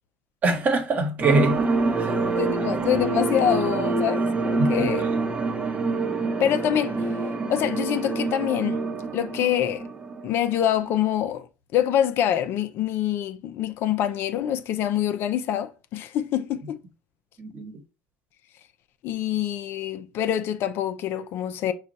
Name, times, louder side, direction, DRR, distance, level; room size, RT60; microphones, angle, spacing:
voice 1, 0.4-1.7 2.0-2.3 4.6-5.1 17.4-17.7, right 2 dB, 40° right, 1.2 m, -24 dB
sound 1, 1.2-11.1, right 3 dB, 25° right, 0.7 m, -26 dB
voice 2, 2.4-5.1 6.4-7.1 7.5-8.8 9.1-9.8 10.2-11.5 11.7-16.8 19.0-21.7, left 10 dB, 60° left, 0.5 m, -25 dB
5.0 x 2.4 x 4.0 m
hypercardioid pair, 80°, 5 cm